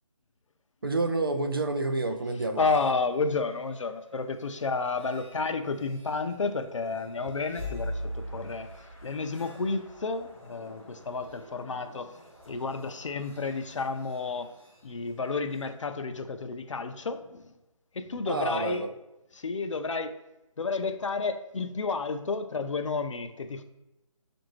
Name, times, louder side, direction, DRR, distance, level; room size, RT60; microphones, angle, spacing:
voice 1, 0.8-2.6 18.3-18.9, right 2 dB, 40° right, 6 dB, 0.4 m, -28 dB
voice 2, 2.6-8.7 9.0-12.2 12.5-14.5 14.8-17.5 17.9-18.8 19.3-20.1 20.6-23.6, left 4 dB, 60° left, 8 dB, 0.5 m, -31 dB
sound 1, 2.9-15.7, equal, ahead, 0.7 m, -44 dB
6.5 x 2.6 x 3.0 m, 0.95 s
figure-of-eight pair, 175°, 18 cm